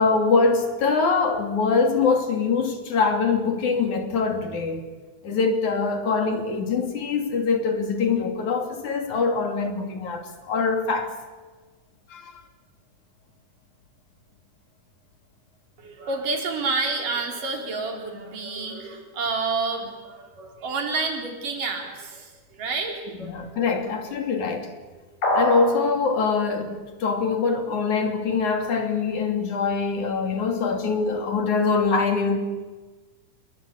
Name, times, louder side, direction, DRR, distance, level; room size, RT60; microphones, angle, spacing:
voice 1, 0.0-4.9 5.2-11.1 12.1-12.3 23.3-24.7 25.3-32.4, left 4 dB, 65° left, 4.2 m, -23 dB
voice 2, 15.8-23.5 23.8-23.9, right 3 dB, 90° right, 5.5 m, -29 dB
sound 1, 25.2-25.8, equal, 85° left, 8.2 m, -22 dB
28.5 x 20.5 x 8.6 m
omnidirectional pair, 3.6 m